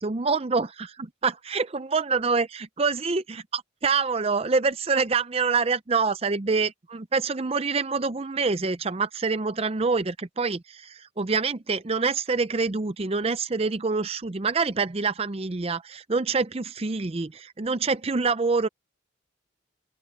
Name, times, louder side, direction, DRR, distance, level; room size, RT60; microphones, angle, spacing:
voice 1, 0.0-18.7, right 4 dB, 30° right, 0.5 m, -26 dB
open air
head